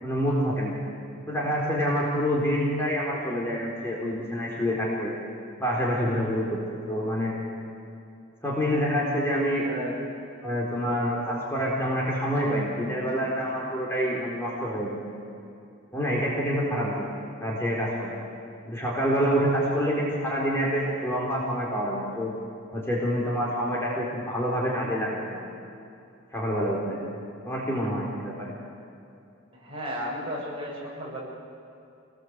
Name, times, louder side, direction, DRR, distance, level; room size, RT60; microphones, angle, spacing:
voice 1, 0.0-0.7 1.3-5.1 5.6-6.6 6.9-7.3 8.4-9.9 10.4-15.0 15.9-17.1 17.4-18.2 18.7-22.3 22.7-25.5 26.3-27.0 27.4-28.5, equal, 10° left, -5 dB, 4.2 m, -27 dB
voice 2, 29.5-31.2, equal, 25° right, -4 dB, 7.5 m, -34 dB
27.0 x 20.5 x 8.1 m, 2.6 s
head